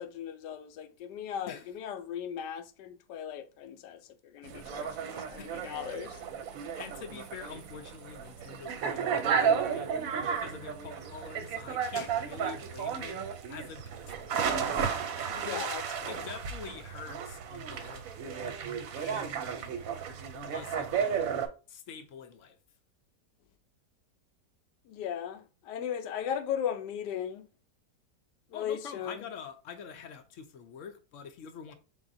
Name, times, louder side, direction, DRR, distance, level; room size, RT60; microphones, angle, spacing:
voice 1, 0.0-6.2 12.0-12.1 15.2-16.2 24.9-27.5 28.5-29.2, left 9 dB, 85° left, 1.2 m, -37 dB
sound 1, 4.4-21.5, right 7 dB, 65° right, 1.0 m, -33 dB
voice 2, 5.4-5.7 6.8-9.9 10.2-13.8 14.3-14.9 15.2-15.7 16.1-18.0 18.4-18.6 18.9-19.7 20.3-21.4 21.7-22.6 28.5-31.7, left 6 dB, 65° left, 0.8 m, -45 dB
4.9 x 3.6 x 2.6 m
omnidirectional pair, 1.8 m